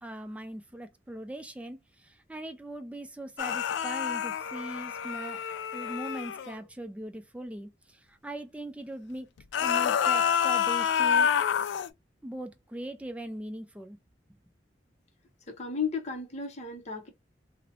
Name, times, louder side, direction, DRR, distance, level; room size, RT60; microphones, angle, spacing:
voice 1, 0.0-5.4 5.7-9.3 9.6-11.3 12.2-14.0, right 1 dB, 5° right, 0.3 m, -40 dB
sound 1, 3.4-6.5 9.4-11.9, left 7 dB, 90° left, 0.3 m, -28 dB
voice 2, 15.5-17.1, left 5 dB, 40° left, 0.7 m, -34 dB
2.7 x 2.0 x 2.7 m
head